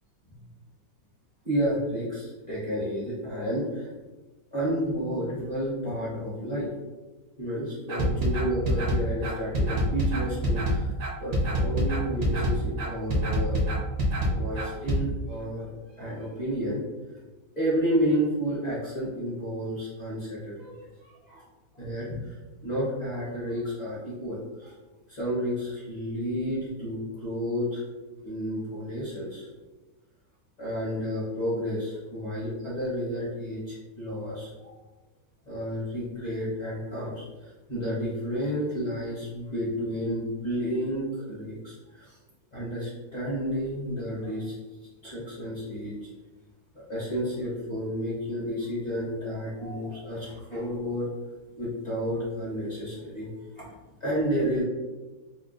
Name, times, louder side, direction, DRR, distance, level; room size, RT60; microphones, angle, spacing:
voice 1, 1.4-3.9 4.5-6.7 7.4-10.9 11.2-13.6 14.2-15.7 16.0-16.8 17.6-21.4 21.7-22.4 22.6-24.7 25.1-27.8 28.2-29.5 30.6-34.7 35.5-42.2 42.5-44.5 45.0-45.9 46.9-51.1 51.6-53.3 53.6-53.7 54.0-54.6, equal, 40° left, -9 dB, 0.6 m, -31 dB
sound 1, 7.9-15.0, equal, 60° right, 0.8 m, -25 dB
4.3 x 2.2 x 2.5 m, 1.2 s
omnidirectional pair, 2.1 m